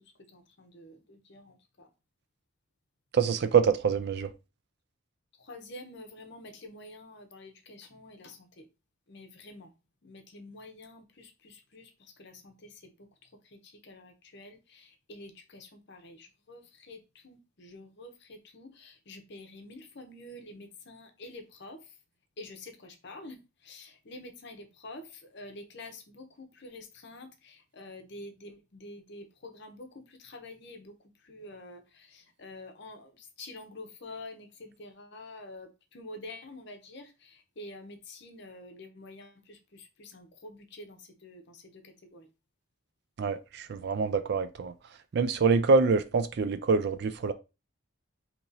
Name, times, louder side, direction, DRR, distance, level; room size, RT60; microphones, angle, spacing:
voice 1, 0.3-1.5 5.5-8.6 9.1-9.7 10.0-11.9 12.2-12.5 13.9-16.6 16.9-17.0 17.2-21.8 22.4-23.4 23.7-25.0 25.3-29.9 30.2-30.9 31.3-31.8 32.1-33.1 33.4-37.1 37.6-39.6 40.0-41.6 42.1-42.3, left 2 dB, 50° left, 0.7 m, -47 dB
voice 2, 3.1-4.3 43.2-44.7 45.1-47.3, right 5 dB, 50° right, 0.3 m, -25 dB
2.9 x 2.7 x 3.8 m
head